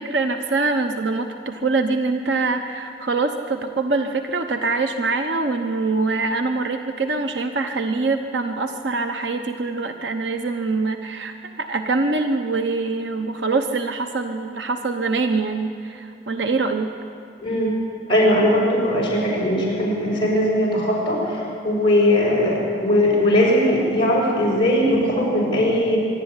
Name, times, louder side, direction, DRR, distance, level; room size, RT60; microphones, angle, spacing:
voice 1, 0.0-16.9, right 3 dB, 85° right, 5 dB, 1.0 m, -24 dB
voice 2, 17.4-17.7 18.1-26.0, left 1 dB, 30° left, -5 dB, 6.1 m, -19 dB
25.0 x 12.0 x 9.7 m, 2.5 s
head